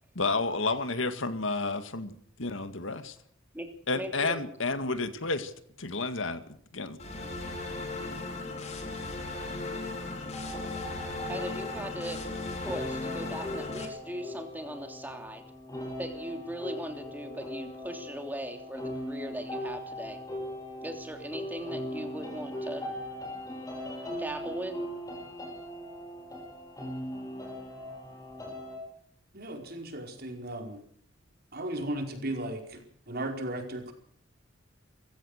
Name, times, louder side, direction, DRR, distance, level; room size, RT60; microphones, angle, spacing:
voice 1, 0.2-2.1 2.4-3.2 3.9-5.5 5.8-7.0, left 3 dB, 75° left, 10 dB, 2.1 m, -31 dB
voice 2, 3.9-4.4 11.3-12.2 12.6-15.4 16.0-20.2 20.8-22.9 24.2-24.8, equal, 10° right, 5 dB, 3.2 m, -39 dB
sound 1, 7.0-13.9, left 3 dB, 35° left, 4.7 m, -36 dB
sound 2, 10.3-28.8, equal, 15° left, 7.3 m, -40 dB
voice 3, 29.3-30.8 31.5-33.9, right 1 dB, 50° right, 3 dB, 4.8 m, -36 dB
26.0 x 16.0 x 6.6 m, 0.64 s
head